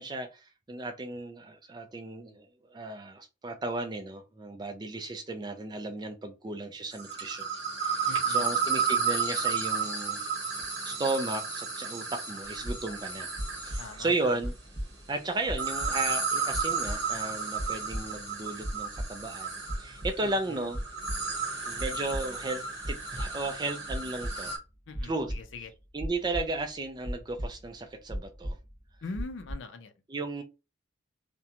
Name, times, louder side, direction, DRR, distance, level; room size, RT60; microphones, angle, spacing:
voice 1, 0.0-7.5 7.8-10.2 10.8-13.3 13.6-14.5 15.1-20.8 21.7-24.5 25.0-25.3 25.9-28.6 30.1-30.4, right 2 dB, 20° right, 0.3 m, -35 dB
sound 1, 6.9-14.1 15.4-24.6, right 5 dB, 60° right, 0.8 m, -32 dB
voice 2, 8.1-8.5 13.8-14.3 20.2-20.6 24.9-25.7 29.0-29.9, left 3 dB, 65° left, 0.4 m, -42 dB
sound 2, 12.4-13.1 13.4-14.1 14.4-15.2 15.4-16.2 16.5-17.3 17.6-18.3 18.6-19.4 19.7-20.3 20.6-21.5 21.8-22.5 22.8-23.6 23.9-24.5 24.9-26.8 27.1-27.8 28.1-28.9 29.1-29.5, equal, 25° left, 1.0 m, -37 dB
2.8 x 2.1 x 2.4 m
head